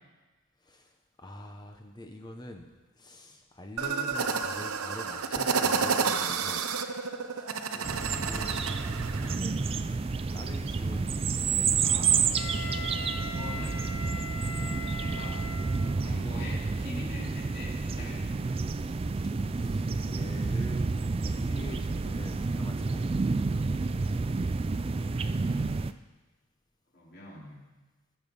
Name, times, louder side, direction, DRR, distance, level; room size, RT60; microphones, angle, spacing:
voice 1, 0.6-2.7 3.0-6.6 7.3-9.6 9.9-10.0 10.3-11.1 11.4-11.8 19.3-21.0 21.2-23.1, left 1 dB, 20° left, 4 dB, 0.8 m, -45 dB
sound 1, 3.8-9.4, right 5 dB, 85° right, 0.8 m, -30 dB
sound 2, 7.8-25.9, right 4 dB, 25° right, 0.3 m, -30 dB
voice 2, 11.8-12.4 13.2-13.9 14.9-15.4 15.8-18.4 26.9-27.6, left 1 dB, 50° left, -5 dB, 3.9 m, -43 dB
Wind instrument woodwind instrument, 12.3-16.2, left 2 dB, 75° left, 1.4 m, -40 dB
20.5 x 7.1 x 5.4 m, 1.2 s
head